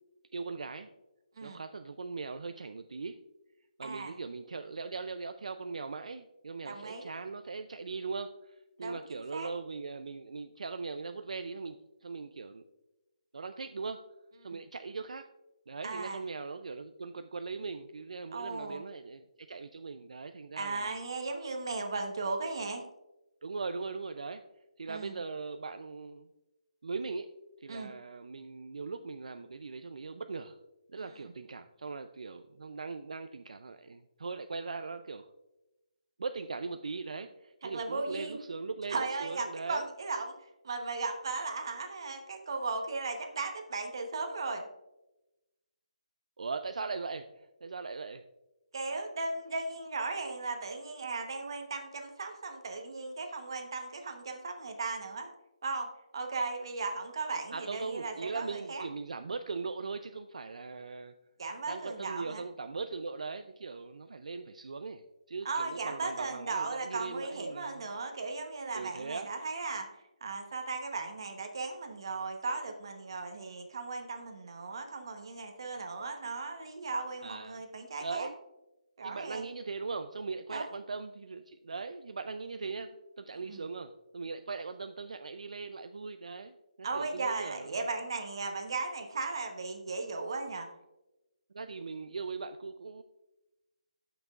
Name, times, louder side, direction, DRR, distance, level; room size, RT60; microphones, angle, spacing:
voice 1, 0.3-0.9 1.4-3.2 3.8-12.6 13.3-14.0 14.4-15.3 15.7-20.9 23.4-24.4 24.8-26.3 26.8-27.3 27.6-30.6 30.9-35.3 36.2-39.8 46.4-48.2 57.5-61.1 61.7-67.9 68.7-69.3 77.2-77.6 78.0-78.3 79.0-87.9 91.5-93.0, right 4 dB, 65° right, 8 dB, 0.4 m, -40 dB
voice 2, 3.8-4.1 6.6-7.1 8.8-9.5 14.4-14.6 15.8-16.2 18.3-18.9 20.6-22.8 24.9-25.2 27.7-27.9 31.0-31.2 37.6-38.4 38.9-40.3 40.6-44.6 48.7-55.3 55.6-55.9 56.1-58.8 61.4-62.4 65.4-69.9 70.2-78.3 79.0-79.5 80.5-80.7 83.5-83.6 86.8-90.7, right 3 dB, 40° right, 4 dB, 1.0 m, -36 dB
12.0 x 6.0 x 2.4 m, 0.98 s
hypercardioid pair, 180°, 4 cm